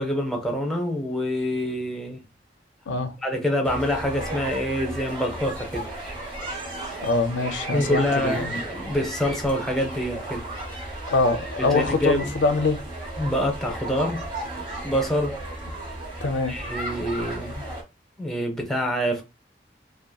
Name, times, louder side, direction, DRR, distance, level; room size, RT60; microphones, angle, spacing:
voice 1, 0.0-2.2 3.2-5.9 7.7-10.5 11.6-12.3 13.2-14.2 14.8-15.4 16.5-17.6 18.2-19.2, equal, 5° left, 0.5 m, -26 dB
sound 1, 3.6-17.8, right 1 dB, 25° right, 0.9 m, -34 dB
voice 2, 7.0-8.6 11.1-12.8 16.2-16.6, left 3 dB, 80° left, 0.4 m, -24 dB
2.7 x 2.5 x 2.2 m
head